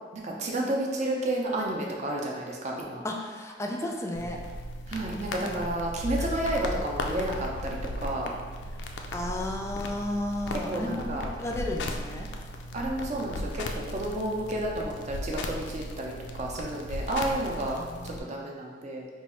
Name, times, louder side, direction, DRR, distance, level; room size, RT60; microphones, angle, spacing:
voice 1, 0.1-3.0 4.9-8.3 10.5-11.3 12.7-17.8 18.0-19.1, right 1 dB, 40° right, -1 dB, 0.5 m, -31 dB
voice 2, 3.0-4.4 6.2-6.3 9.1-12.3 17.7-18.6, left 1 dB, 15° left, 1 dB, 0.3 m, -34 dB
sound 1, 4.1-18.2, left 1 dB, 85° left, 0.4 m, -36 dB
3.1 x 2.3 x 4.2 m, 1.5 s
head